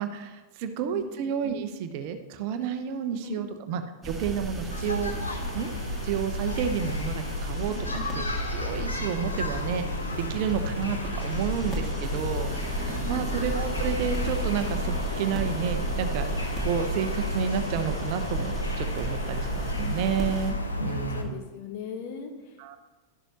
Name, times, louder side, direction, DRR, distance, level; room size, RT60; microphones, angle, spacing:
voice 1, 0.0-5.1 5.5-5.7 6.0-7.7 8.1-9.9 10.2-21.3 22.6-22.8, right 7 dB, 45° right, 8 dB, 0.8 m, -31 dB
voice 2, 0.6-1.0 3.2-3.4 7.7-8.1 12.9-13.3 20.8-22.6, left 7 dB, 45° left, 4 dB, 1.4 m, -39 dB
sound 1, 4.0-20.5, right 1 dB, 5° right, 1.9 m, -33 dB
sound 2, 4.7-21.2, left 1 dB, 80° left, 1.1 m, -33 dB
12.0 x 11.0 x 3.0 m, 1.2 s
figure-of-eight pair, 90°, 0 cm